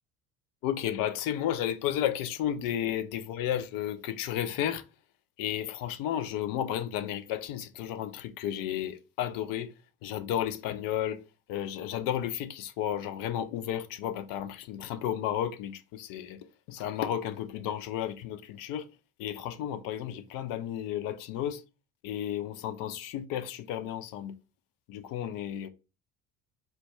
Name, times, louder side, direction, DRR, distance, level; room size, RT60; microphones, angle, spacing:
voice 1, 0.6-4.8 5.4-9.7 10.0-11.2 11.5-16.4 16.7-18.9 19.2-21.6 22.0-24.4 24.9-25.7, left 10 dB, 50° left, 0.6 m, -33 dB
4.1 x 2.2 x 3.1 m
figure-of-eight pair, 55°, 45 cm